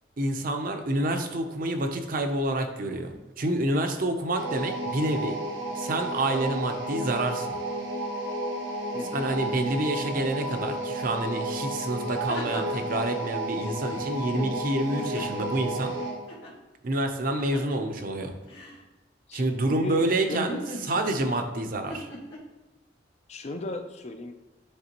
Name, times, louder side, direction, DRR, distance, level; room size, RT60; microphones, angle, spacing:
voice 1, 0.2-5.4 5.7-7.6 9.1-15.9 16.8-18.3 19.3-20.6 20.9-22.1, right 1 dB, 45° right, 5 dB, 0.6 m, -28 dB
sound 1, 4.4-16.2, right 1 dB, 90° right, 1.1 m, -32 dB
voice 2, 8.9-9.3 14.3-14.6 19.3-20.7 23.3-24.3, left 2 dB, 35° left, 6 dB, 0.4 m, -35 dB
sound 2, 11.5-11.6 12.0-13.0 14.8-15.6 16.3-16.5 17.3-17.8 18.5-18.8 20.3-21.3 21.9-22.4, left 1 dB, 65° left, 1.9 m, -40 dB
9.7 x 3.3 x 2.9 m, 1.2 s
head